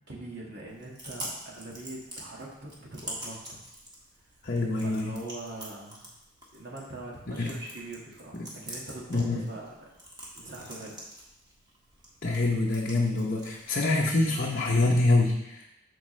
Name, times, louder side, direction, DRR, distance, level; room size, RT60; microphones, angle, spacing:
voice 1, 0.1-3.6 4.8-6.1 6.5-9.7 10.3-11.0, right 2 dB, 50° right, -3 dB, 1.8 m, -42 dB
Chewing mastication, 0.7-14.7, right 1 dB, 20° right, 1.5 m, -46 dB
voice 2, 4.4-5.1 7.4-7.5 9.1-9.4 12.2-15.6, left 2 dB, 40° left, -2 dB, 0.8 m, -25 dB
13.5 x 4.7 x 3.2 m, 0.86 s
head